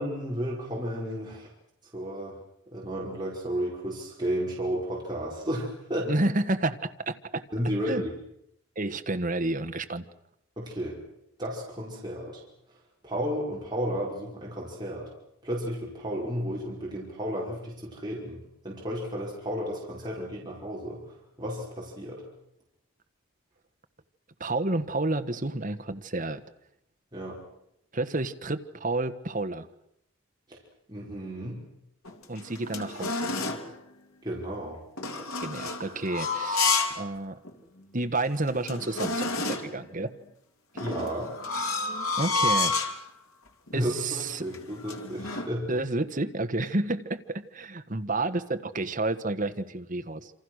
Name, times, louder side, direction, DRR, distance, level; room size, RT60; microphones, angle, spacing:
voice 1, 0.0-1.5 1.9-2.4 2.7-6.1 7.5-8.1 10.6-11.0 11.4-12.4 13.0-15.1 15.4-18.4 18.6-21.0 21.4-22.2 27.1-27.4 30.5-30.6 30.9-31.6 34.2-34.8 40.8-41.3 43.7-45.7, equal, 20° right, -4 dB, 5.5 m, -33 dB
voice 2, 6.1-7.4 7.9-8.0 8.8-10.0 24.4-26.4 27.9-29.7 32.3-33.4 35.4-37.4 37.9-40.1 42.2-42.9 43.7-44.5 45.7-50.3, right 2 dB, 40° right, 8 dB, 1.4 m, -30 dB
sound 1, 32.0-33.7 35.0-37.0 37.4-37.5 38.1-38.2 38.4-39.8 40.8-43.0 43.7-43.9 44.2-45.5, left 3 dB, 85° left, 2.9 m, -30 dB
28.0 x 26.5 x 6.5 m, 0.80 s
head